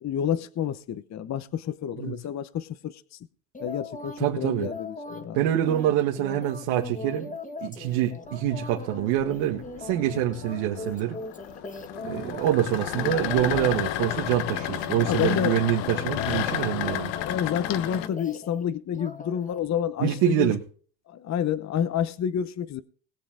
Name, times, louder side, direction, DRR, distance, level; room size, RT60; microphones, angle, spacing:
voice 1, 0.0-3.2 3.6-5.4 15.0-15.7 17.2-20.5 21.1-22.8, left 9 dB, 35° left, 0.9 m, -29 dB
sound 1, 3.5-4.2 4.6-12.6 12.9-14.2 14.5-15.0 15.3-18.6 18.9-19.6 20.0-20.2, left 3 dB, 15° left, 1.9 m, -40 dB
voice 2, 4.2-4.7 5.3-7.3 7.6-11.2 12.0-17.1 20.0-20.6, right 11 dB, 80° right, 2.0 m, -25 dB
sound 2, 8.3-18.1, left 13 dB, 65° left, 1.1 m, -32 dB
20.5 x 7.7 x 3.8 m
supercardioid pair, 105°, 46 cm